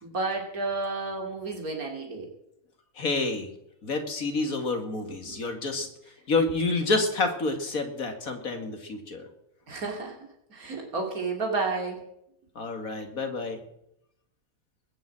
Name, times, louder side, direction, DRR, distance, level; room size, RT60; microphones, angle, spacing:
voice 1, 0.0-2.3 5.2-5.4 9.7-12.0, right 3 dB, 85° right, 1 dB, 3.3 m, -31 dB
voice 2, 3.0-3.5 3.8-5.9 6.3-9.3 12.6-13.6, left 3 dB, 75° left, 6 dB, 2.5 m, -28 dB
20.0 x 7.3 x 8.7 m, 0.78 s
omnidirectional pair, 1.5 m